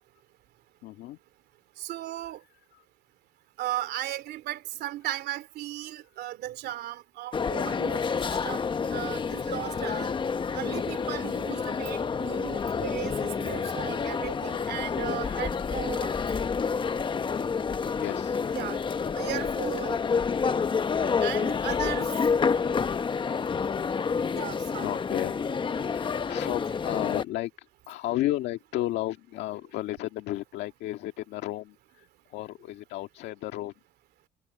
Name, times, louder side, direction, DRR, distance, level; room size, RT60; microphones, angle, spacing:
voice 1, 0.8-1.2 8.9-9.1 11.1-11.4 17.9-18.4 24.8-25.4 25.8-33.7, left 15 dB, 85° left, 1.9 m, -33 dB
voice 2, 1.8-2.4 3.6-10.1 10.5-16.1 18.5-18.8 19.2-20.0 21.2-22.1 24.3-25.0, right 13 dB, 75° right, 2.7 m, -36 dB
sound 1, 7.3-27.2, left 5 dB, 30° left, 1.0 m, -29 dB
cardioid pair, 110°, 17 cm